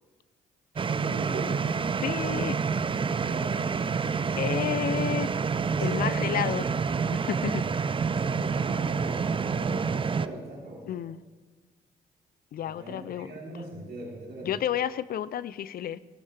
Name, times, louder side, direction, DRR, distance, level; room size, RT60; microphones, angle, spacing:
voice 1, 0.7-1.7 3.2-4.5 5.6-6.7 8.0-11.0 12.6-14.6, right 2 dB, 60° right, -3 dB, 3.8 m, -40 dB
sound 1, 0.8-10.3, right 5 dB, 30° right, 0.5 m, -28 dB
voice 2, 2.0-2.6 4.4-5.3 5.8-6.7 7.1-7.6 10.9-11.2 12.5-13.3 14.4-16.0, left 10 dB, 55° left, 18 dB, 0.4 m, -31 dB
16.5 x 10.5 x 3.3 m, 1.3 s
hypercardioid pair, 50°, 19 cm